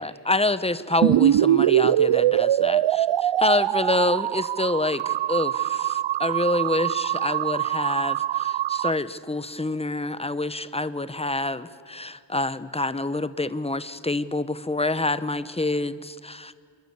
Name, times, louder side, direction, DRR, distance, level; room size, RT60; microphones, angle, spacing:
voice 1, 0.0-16.5, left 2 dB, 15° left, 14 dB, 0.9 m, -27 dB
sound 1, 1.0-8.9, right 12 dB, 85° right, 0.6 m, -23 dB
27.5 x 22.5 x 8.1 m, 2.4 s
wide cardioid pair, 115°, 44 cm